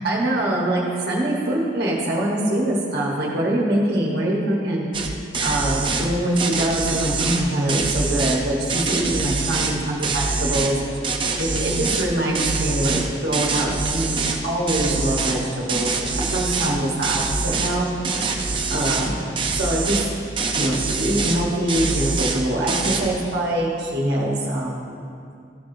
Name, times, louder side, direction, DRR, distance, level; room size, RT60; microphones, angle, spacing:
voice 1, 0.0-17.9 18.3-19.2 19.6-20.0 20.5-24.8, right 1 dB, 55° right, -3 dB, 1.1 m, -24 dB
sound 1, 4.9-5.1 5.3-6.1 6.4-8.4 8.7-9.7 10.0-10.7 11.0-12.1 12.3-14.4 14.7-15.4 15.7-16.8 17.0-17.8 18.0-19.1 19.4-20.0 20.4-21.4 21.7-22.4 22.7-23.1, right 4 dB, 25° right, 0.6 m, -24 dB
13.5 x 6.2 x 2.6 m, 2.5 s
head